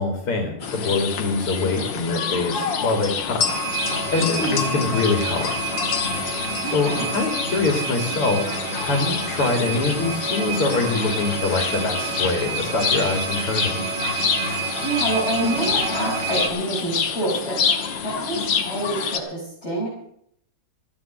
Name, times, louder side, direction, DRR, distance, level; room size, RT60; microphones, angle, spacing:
voice 1, 0.0-3.4 4.1-5.5 6.7-8.4 8.8-13.7, left 3 dB, 85° left, 4 dB, 3.2 m, -24 dB
sound 1, 0.6-19.2, left 6 dB, 60° left, 2.0 m, -27 dB
sound 2, 3.5-16.5, right 6 dB, 60° right, 2.4 m, -30 dB
voice 2, 4.2-4.6 6.6-7.1 14.8-17.6 18.0-19.9, right 1 dB, 30° left, -8 dB, 6.2 m, -27 dB
14.0 x 9.6 x 7.5 m, 0.68 s
omnidirectional pair, 2.4 m